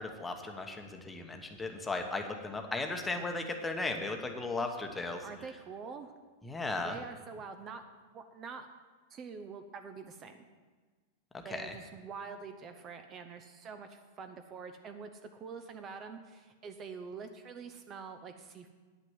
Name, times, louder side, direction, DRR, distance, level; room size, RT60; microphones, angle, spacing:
voice 1, 0.0-5.2 6.4-7.0 11.5-11.7, left 3 dB, 10° left, 4 dB, 1.0 m, -36 dB
voice 2, 5.2-6.1 6.8-7.8 8.1-8.7 9.1-10.3 11.4-18.7, right 5 dB, 30° right, 8 dB, 0.6 m, -45 dB
9.3 x 6.0 x 7.9 m, 1.4 s
supercardioid pair, 135°, 0 cm